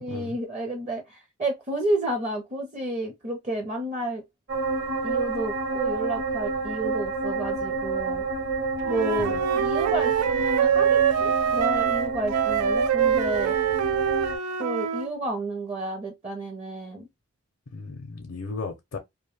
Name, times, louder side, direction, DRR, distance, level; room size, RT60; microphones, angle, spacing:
voice 1, 0.0-4.2 5.0-8.2 8.9-13.6 14.6-17.1, right 1 dB, 30° right, 0.6 m, -31 dB
sound 1, 4.5-14.4, right 3 dB, 50° right, 0.9 m, -29 dB
Wind instrument woodwind instrument, 8.8-15.1, right 8 dB, 85° right, 0.4 m, -24 dB
voice 2, 17.7-19.0, left 4 dB, 60° left, 0.5 m, -35 dB
2.5 x 2.1 x 3.1 m
head